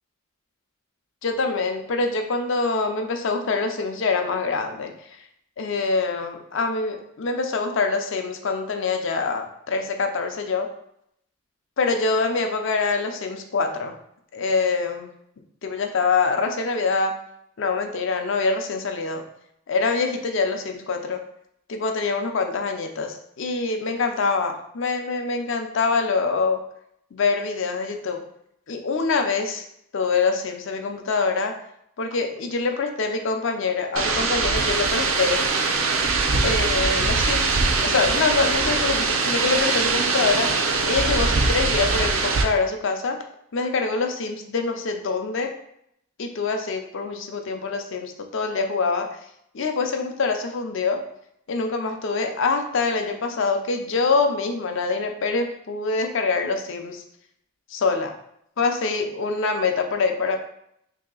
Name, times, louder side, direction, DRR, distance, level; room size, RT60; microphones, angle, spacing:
voice 1, 1.2-4.9 5.6-10.7 11.8-13.9 14.3-15.1 15.6-17.2 17.6-19.2 19.7-21.2 21.7-26.6 27.1-28.3 28.7-29.6 29.9-31.6 32.0-35.4 36.4-40.5 40.9-43.2 43.5-45.5 46.2-49.1 49.5-51.0 51.5-57.0 57.7-58.1 58.6-60.4, left 4 dB, 60° left, 5 dB, 0.5 m, -25 dB
sound 1, 34.0-42.4, right 4 dB, 80° right, 0.5 m, -22 dB
3.0 x 2.8 x 3.8 m, 0.74 s
head